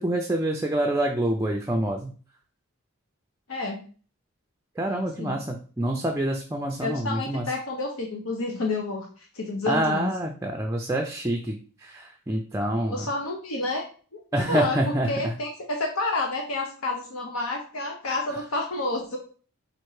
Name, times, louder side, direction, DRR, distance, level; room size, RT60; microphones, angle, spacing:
voice 1, 0.0-2.1 4.8-7.5 9.7-13.1 14.3-15.3, right 1 dB, 15° right, 1 dB, 0.4 m, -27 dB
voice 2, 3.5-3.8 4.9-5.4 6.8-10.1 12.8-13.8 14.1-14.2 14.5-19.2, left 2 dB, 75° left, 2 dB, 0.8 m, -30 dB
4.4 x 2.5 x 4.7 m, 0.39 s
head